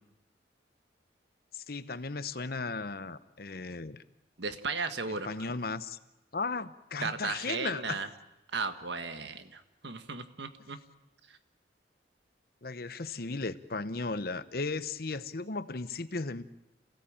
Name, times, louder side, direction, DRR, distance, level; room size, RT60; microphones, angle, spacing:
voice 1, 1.5-4.0 5.2-6.0 6.3-8.0 12.6-16.4, left 3 dB, 55° left, 13 dB, 0.9 m, -36 dB
voice 2, 4.4-5.3 7.0-8.1 8.5-10.8, right 4 dB, 80° right, 9 dB, 1.6 m, -35 dB
28.0 x 17.0 x 8.8 m, 0.97 s
head